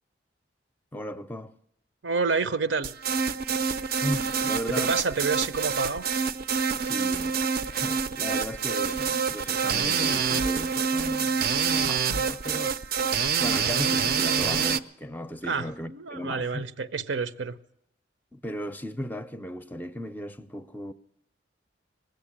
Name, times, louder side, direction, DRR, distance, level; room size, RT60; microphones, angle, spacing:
voice 1, 0.9-1.5 4.0-4.9 6.8-7.3 7.7-12.8 13.4-16.6 18.3-20.9, left 1 dB, 10° left, 0.5 m, -36 dB
voice 2, 2.0-2.9 4.7-6.1 15.4-17.6, right 4 dB, 90° right, 0.7 m, -28 dB
sound 1, 2.8-14.8, right 6 dB, 55° right, 0.5 m, -26 dB
19.5 x 7.9 x 8.6 m
head